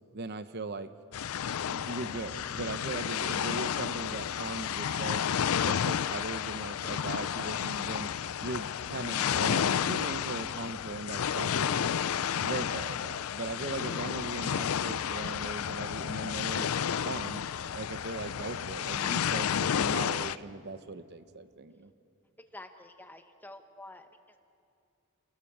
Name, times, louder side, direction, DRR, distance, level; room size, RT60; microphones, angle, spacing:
voice 1, 0.1-0.9 1.6-5.2 5.6-8.1 8.4-11.9 12.4-16.7 17.0-17.4 17.7-21.9, right 3 dB, 50° right, 11 dB, 0.8 m, -39 dB
sound 1, 1.1-20.4, left 8 dB, 75° left, 0.5 m, -31 dB
voice 2, 22.5-24.4, left 1 dB, 10° left, 7 dB, 1.2 m, -49 dB
29.5 x 18.5 x 7.3 m, 2.4 s
head